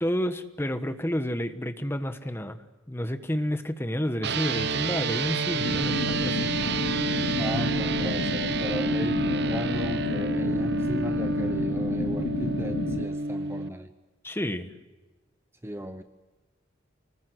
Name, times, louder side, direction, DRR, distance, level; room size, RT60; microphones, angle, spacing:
voice 1, 0.0-6.5 14.2-14.7, equal, 10° left, 9 dB, 1.2 m, -30 dB
sound 1, 4.2-13.7, right 3 dB, 55° right, 0.9 m, -28 dB
sound 2, 5.6-13.0, left 3 dB, 65° left, 0.8 m, -31 dB
voice 2, 7.4-13.9 15.6-16.0, right 1 dB, 10° right, 9 dB, 0.8 m, -36 dB
26.0 x 20.0 x 8.0 m, 1.2 s
head